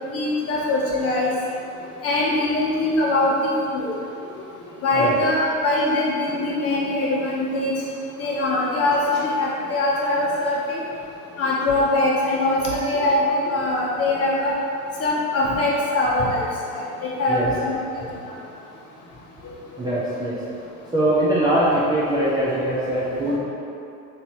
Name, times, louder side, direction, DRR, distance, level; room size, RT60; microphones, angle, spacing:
voice 1, 0.1-1.3 2.0-3.9 4.8-7.7 8.2-10.8 11.4-14.5 15.0-16.5 16.7-17.8 19.4-19.5, left 2 dB, 30° left, -5 dB, 1.0 m, -22 dB
voice 2, 19.8-20.4 20.9-23.4, right 1 dB, 10° right, -10 dB, 0.5 m, -22 dB
3.3 x 2.7 x 4.3 m, 2.7 s
hypercardioid pair, 80°, 45 cm